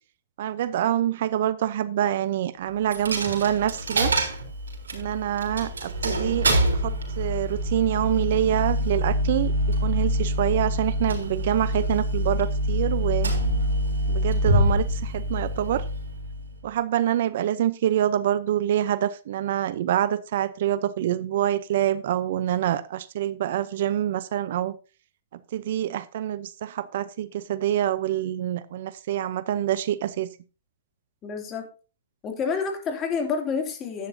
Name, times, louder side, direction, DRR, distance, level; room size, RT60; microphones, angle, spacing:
voice 1, 0.4-4.1 4.9-13.3 14.1-15.8 16.6-24.8 25.5-30.3, right 11 dB, 60° right, 16 dB, 0.6 m, -26 dB
Coin (dropping), 2.9-16.6, equal, 90° right, 3.5 m, -26 dB
voice 2, 31.2-31.7 32.2-34.1, left 5 dB, 25° left, 3 dB, 2.7 m, -28 dB
11.0 x 9.0 x 2.7 m, 0.33 s
hypercardioid pair, 130°, 0 cm